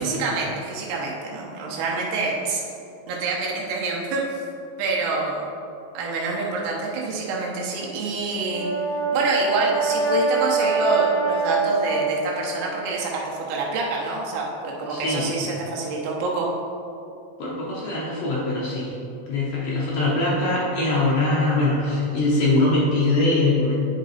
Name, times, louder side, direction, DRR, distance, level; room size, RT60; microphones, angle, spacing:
voice 1, 0.0-2.6 3.1-4.2 4.8-5.5 5.9-8.7 9.1-16.5, right 3 dB, 85° right, -3 dB, 3.1 m, -26 dB
Brass instrument, 8.3-12.5, right 3 dB, 60° left, 1.3 m, -24 dB
voice 2, 14.9-15.3 17.4-18.9 19.3-23.8, left 2 dB, 80° left, -6 dB, 1.4 m, -22 dB
9.3 x 5.3 x 4.1 m, 2.7 s
omnidirectional pair, 4.7 m